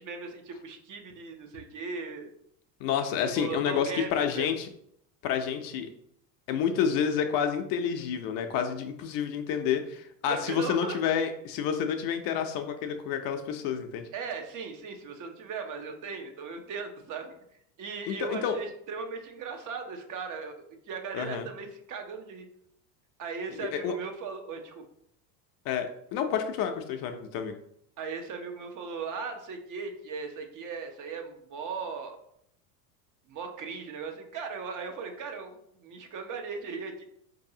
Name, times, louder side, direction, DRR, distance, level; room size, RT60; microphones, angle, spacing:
voice 1, 0.0-2.3 3.4-4.5 10.3-11.0 14.1-17.3 17.8-22.5 23.2-24.8 28.0-32.2 33.3-35.5 35.8-37.0, right 5 dB, 40° right, 5 dB, 0.7 m, -38 dB
voice 2, 2.8-4.7 5.2-5.9 6.5-14.1 18.1-18.6 21.1-21.5 23.7-23.9 25.7-27.5, left 8 dB, 45° left, 6 dB, 0.5 m, -29 dB
4.5 x 2.7 x 2.7 m, 0.72 s
hypercardioid pair, 90°, 50 cm